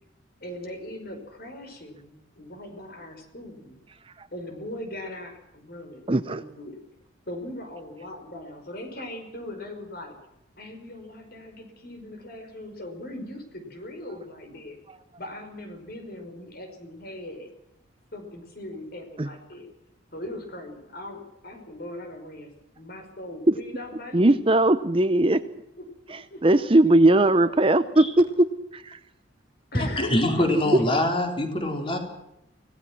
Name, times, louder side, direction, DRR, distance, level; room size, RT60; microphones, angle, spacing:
voice 1, 0.4-3.8 4.3-6.8 7.3-10.2 10.6-14.8 15.2-17.5 18.1-19.7 20.1-24.4 26.3-27.4 29.7-30.5, left 1 dB, 50° left, 6 dB, 5.4 m, -40 dB
voice 2, 6.1-6.4 19.2-19.3 24.1-25.4 26.1-29.0, right 1 dB, 25° right, 12 dB, 0.7 m, -20 dB
voice 3, 29.7-32.0, left 1 dB, 25° left, 3 dB, 4.1 m, -24 dB
24.5 x 18.5 x 6.1 m, 0.86 s
head